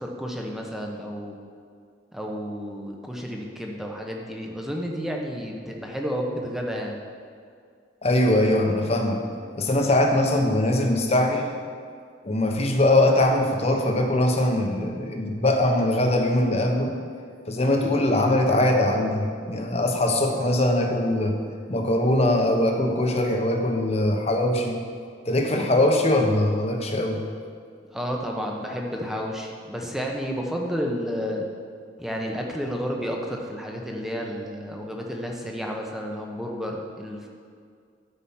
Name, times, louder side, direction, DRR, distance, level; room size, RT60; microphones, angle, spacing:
voice 1, 0.0-1.4 2.1-7.0 27.9-31.4 32.0-37.3, equal, ahead, 0 dB, 1.0 m, -31 dB
voice 2, 8.0-9.2 9.6-11.5 12.2-17.0 17.5-21.4 21.7-24.8 25.2-27.2, left 1 dB, 35° left, 2 dB, 1.0 m, -22 dB
12.5 x 5.0 x 5.7 m, 2.2 s
head